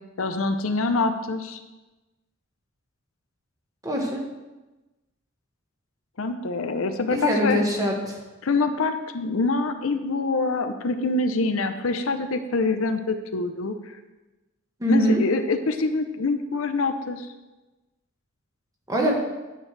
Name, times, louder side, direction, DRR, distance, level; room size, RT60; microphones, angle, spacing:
voice 1, 0.2-1.6 6.2-7.6 8.4-14.0 14.9-17.3, left 3 dB, 70° left, 8 dB, 0.7 m, -25 dB
voice 2, 3.8-4.2 7.1-8.2 14.8-15.2 18.9-19.1, equal, 15° right, -1 dB, 1.4 m, -23 dB
9.2 x 9.0 x 3.3 m, 1.1 s
head